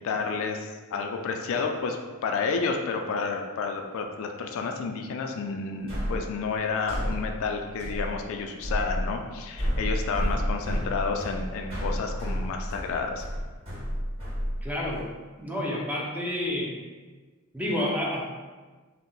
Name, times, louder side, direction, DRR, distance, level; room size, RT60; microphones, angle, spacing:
voice 1, 0.0-13.2, left 4 dB, 65° left, 3 dB, 0.3 m, -30 dB
sound 1, 5.9-15.0, equal, 25° right, 1.4 m, -31 dB
voice 2, 14.6-15.1 15.4-16.8 17.5-18.3, left 1 dB, 5° right, -4 dB, 0.5 m, -29 dB
2.7 x 2.1 x 3.8 m, 1.3 s
head